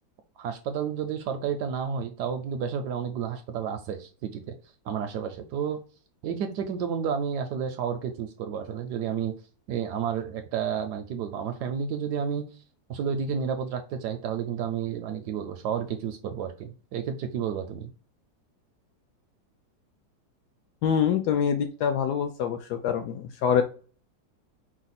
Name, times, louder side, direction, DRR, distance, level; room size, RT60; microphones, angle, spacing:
voice 1, 0.4-4.5 4.9-5.8 6.2-9.3 9.7-12.4 12.9-17.9, right 7 dB, 75° right, 7 dB, 1.0 m, -31 dB
voice 2, 20.8-23.6, left 8 dB, 70° left, 6 dB, 1.0 m, -25 dB
4.9 x 2.1 x 4.0 m, 0.38 s
omnidirectional pair, 2.0 m